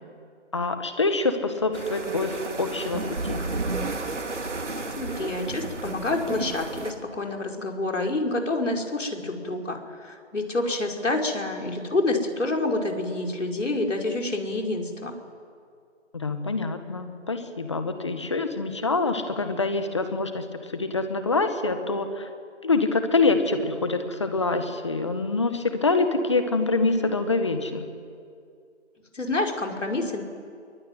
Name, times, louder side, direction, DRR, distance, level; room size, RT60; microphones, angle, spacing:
voice 1, 0.5-2.3 2.6-3.0 3.3-3.4 16.1-20.4 20.7-22.3 22.6-27.8, left 3 dB, 25° left, 8 dB, 1.6 m, -25 dB
sound 1, 1.7-6.9, right 3 dB, 75° right, 3.6 m, -32 dB
voice 2, 5.0-15.1 29.1-30.2, left 2 dB, 85° left, 2 dB, 5.4 m, -28 dB
23.0 x 22.0 x 9.6 m, 2.3 s
figure-of-eight pair, 175°, 36 cm